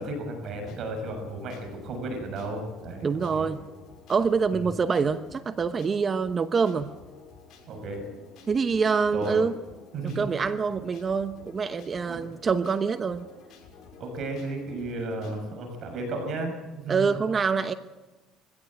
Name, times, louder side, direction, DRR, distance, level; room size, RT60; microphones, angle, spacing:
voice 1, 0.0-3.5 4.5-4.7 7.7-8.0 9.1-9.4 9.9-10.2 12.1-12.2 14.0-17.2, right 2 dB, 55° right, 4 dB, 6.7 m, -34 dB
sound 1, 0.7-15.4, left 4 dB, 60° left, 6.8 m, -52 dB
voice 2, 3.0-3.6 4.1-6.9 8.5-9.5 10.2-13.3 16.9-17.7, right 5 dB, 35° right, 11 dB, 1.0 m, -25 dB
23.0 x 16.0 x 9.0 m, 1.2 s
supercardioid pair, 95°, 0 cm